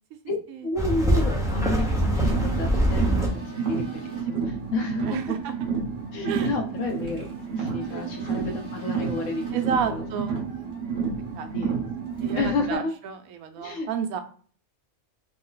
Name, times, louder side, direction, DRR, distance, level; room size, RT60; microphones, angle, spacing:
voice 1, 0.3-5.3 6.1-9.4 9.9-10.1 11.5-11.7 12.3-12.9 13.6-13.9, left 3 dB, 65° left, 3 dB, 1.1 m, -31 dB
sound 1, 0.8-3.3, right 1 dB, 5° right, 0.5 m, -23 dB
Car, 1.6-12.7, right 5 dB, 40° right, 1.0 m, -30 dB
voice 2, 5.0-5.5 6.2-6.5 7.9-8.1 9.5-10.4 11.4-11.5 12.2-14.2, right 7 dB, 80° right, 7 dB, 1.0 m, -31 dB
3.1 x 2.1 x 3.8 m, 0.43 s
omnidirectional pair, 1.5 m